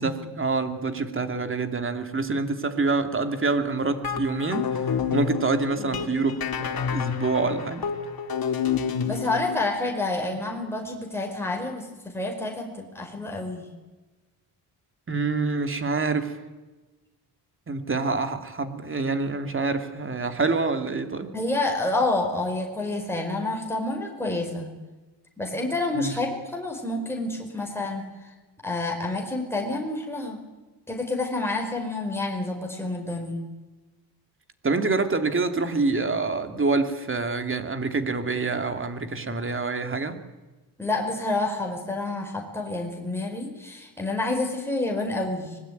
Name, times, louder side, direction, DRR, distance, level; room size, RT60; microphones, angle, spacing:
voice 1, 0.0-4.6 5.1-7.8 15.1-16.4 17.7-21.3 25.9-26.2 34.6-40.2, right 3 dB, 30° right, 7 dB, 3.0 m, -26 dB
sound 1, 3.8-9.6, left 7 dB, 55° left, 3.0 m, -29 dB
voice 2, 9.0-13.7 21.3-24.7 25.4-28.1 28.6-30.4 30.9-33.5 40.8-45.6, left 2 dB, 5° left, 1 dB, 5.1 m, -28 dB
25.0 x 21.0 x 9.5 m, 1.2 s
cardioid pair, 95°, 43 cm